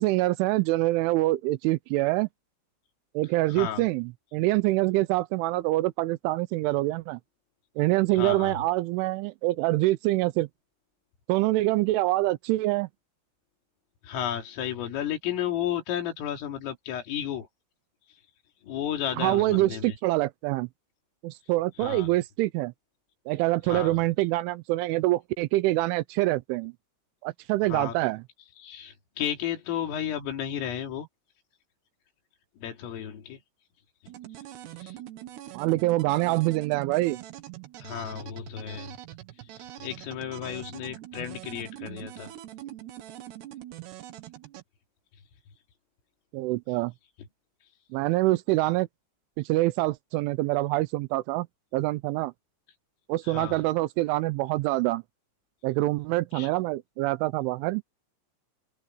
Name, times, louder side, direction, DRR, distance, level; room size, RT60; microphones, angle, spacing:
voice 1, 0.0-2.3 3.1-7.2 7.8-10.5 11.3-12.9 19.2-20.7 21.2-22.7 23.3-26.7 27.2-28.2 35.5-37.2 46.3-46.9 47.9-48.9 49.4-51.5 51.7-52.3 53.1-55.0 55.6-57.8, right 18 dB, 80° right, 3.0 m, -25 dB
voice 2, 3.5-3.9 8.1-8.6 14.0-17.5 18.1-18.2 18.6-20.0 21.8-22.2 23.7-24.1 27.6-28.0 28.6-31.1 32.6-33.4 34.8-35.0 37.8-39.0 39.4-42.3 53.2-53.7 56.3-56.5, left 10 dB, 85° left, 5.6 m, -33 dB
sound 1, 34.1-44.6, right 13 dB, 65° right, 3.3 m, -43 dB
omnidirectional pair, 5.7 m